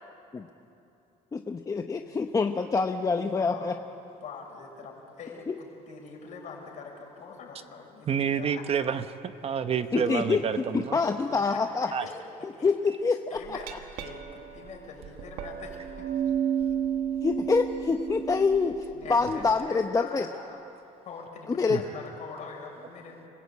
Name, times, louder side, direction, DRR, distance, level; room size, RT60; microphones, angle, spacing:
voice 1, 1.3-3.8 9.9-10.4 10.7-11.9 12.4-13.6 17.2-20.3 21.5-21.8, left 4 dB, 25° left, 5 dB, 0.8 m, -26 dB
voice 2, 3.3-3.7 4.2-8.6 11.3-11.6 12.0-12.2 12.5-12.8 13.3-13.7 14.0-14.2 14.5-16.3 18.9-20.6 21.0-23.2, left 5 dB, 60° left, 0 dB, 5.9 m, -44 dB
voice 3, 8.1-11.0 11.9-12.1 21.7-21.8, right 7 dB, 45° right, 10 dB, 0.9 m, -29 dB
Glass, 13.4-19.5, right 9 dB, 90° right, 1.7 m, -32 dB
27.0 x 16.0 x 8.5 m, 2.8 s
cardioid pair, 110°, 15 cm